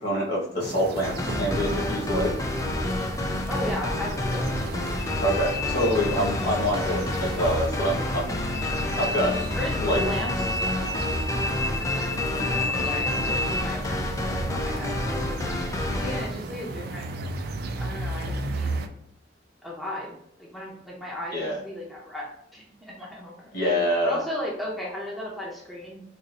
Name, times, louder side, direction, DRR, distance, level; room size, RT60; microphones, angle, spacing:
voice 1, 0.0-2.3 5.2-8.3 8.9-9.3 9.8-10.0 21.3-21.6 23.5-24.2, equal, 55° left, -4 dB, 1.5 m, -26 dB
sound 1, 0.6-18.9, right 2 dB, 55° right, 0.4 m, -35 dB
sound 2, 1.0-16.3, left 1 dB, 15° left, 0.3 m, -29 dB
voice 2, 3.5-4.7 9.5-10.6 11.8-12.2 12.5-15.4 15.9-17.1 17.8-18.8 19.6-26.0, left 1 dB, ahead, -5 dB, 0.7 m, -36 dB
sound 3, 5.0-13.6, left 2 dB, 90° left, 0.7 m, -33 dB
4.0 x 2.6 x 2.6 m, 0.76 s
head